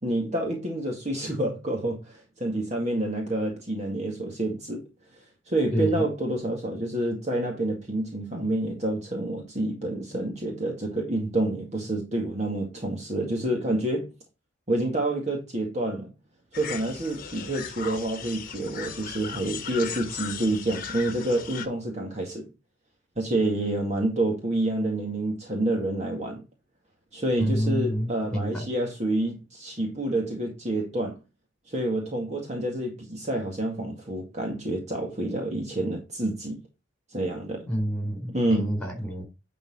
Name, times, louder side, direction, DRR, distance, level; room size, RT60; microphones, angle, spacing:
voice 1, 0.0-4.8 5.2-14.1 14.7-16.1 16.6-22.5 23.2-26.4 27.1-31.2 31.7-36.6 37.1-37.7 38.3-38.7, right 1 dB, 35° right, 2.1 m, -28 dB
voice 2, 5.7-6.0 27.4-28.6 37.7-39.2, equal, 5° left, 4.2 m, -28 dB
sound 1, 16.5-21.7, left 7 dB, 45° left, 1.2 m, -37 dB
10.5 x 4.2 x 4.2 m
head